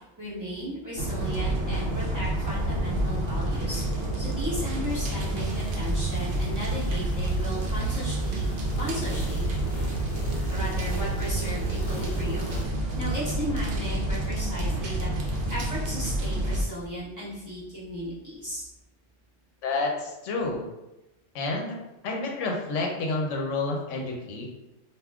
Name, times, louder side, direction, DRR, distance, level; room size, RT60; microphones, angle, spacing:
voice 1, 0.2-8.5 8.7-9.5 10.5-18.7, equal, 15° right, -11 dB, 0.8 m, -35 dB
sound 1, 1.0-16.6, right 1 dB, 60° right, 0.7 m, -29 dB
sound 2, 4.9-12.7, right 1 dB, 50° left, 0.6 m, -36 dB
voice 2, 19.6-20.6 21.3-21.8 22.0-24.5, left 3 dB, 90° left, 1 dB, 0.9 m, -29 dB
3.5 x 2.4 x 2.3 m, 0.97 s
omnidirectional pair, 1.2 m